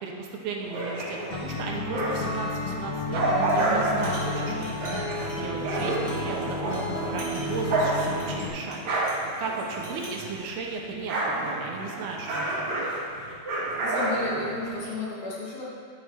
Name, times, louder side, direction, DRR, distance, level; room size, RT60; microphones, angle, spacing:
voice 1, 0.0-8.8 9.4-11.2 11.4-12.8, right 4 dB, 80° right, 0 dB, 2.9 m, -35 dB
sound 1, 0.6-2.4 2.8-10.4 10.7-14.9, right 2 dB, 55° right, 2.7 m, -29 dB
Acoustic guitar, 1.3-8.5, left 2 dB, 80° left, 3.2 m, -32 dB
sound 2, 3.4-3.6 3.9-6.4 6.7-6.8 7.2-9.3 9.7-10.2, equal, 20° left, 1.3 m, -45 dB
voice 2, 13.8-15.6, left 2 dB, 60° left, -6 dB, 2.6 m, -33 dB
10.5 x 6.7 x 4.4 m, 2.3 s
omnidirectional pair, 4.5 m